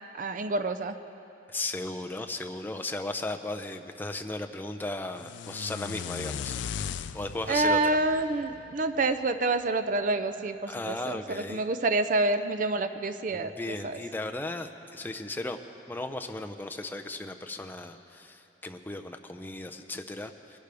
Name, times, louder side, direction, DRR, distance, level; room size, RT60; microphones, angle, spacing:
voice 1, 0.1-1.0 7.5-13.5 13.8-14.0, right 2 dB, 45° right, 10 dB, 0.4 m, -27 dB
voice 2, 1.5-8.0 10.7-11.6 13.3-15.6 15.9-20.6, left 2 dB, 10° left, 5 dB, 0.5 m, -36 dB
sound 1, 5.2-9.3, left 7 dB, 85° left, 0.4 m, -38 dB
21.0 x 11.5 x 3.4 m, 2.9 s
head